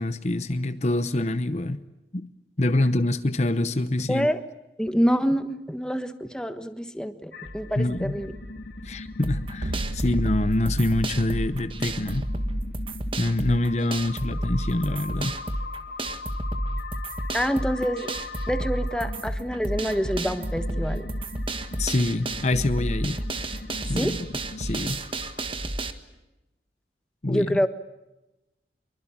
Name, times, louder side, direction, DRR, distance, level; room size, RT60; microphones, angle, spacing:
voice 1, 0.0-1.8 2.1-2.3 2.6-4.3 7.8-8.2 8.8-12.3 13.2-15.3 21.8-23.2 23.9-24.2 24.6-25.0 27.2-27.6, left 2 dB, 40° left, 11 dB, 0.9 m, -25 dB
voice 2, 4.1-4.4 4.8-8.3 17.3-18.1 18.5-21.1 23.9-24.1 27.3-27.7, equal, 5° left, 9 dB, 1.3 m, -26 dB
sound 1, 7.3-25.4, left 3 dB, 65° left, 2.6 m, -40 dB
sound 2, 9.2-25.9, right 1 dB, 30° right, 1.6 m, -31 dB
sound 3, 9.6-15.8, right 1 dB, 80° right, 1.3 m, -37 dB
25.5 x 23.5 x 8.8 m, 0.97 s
head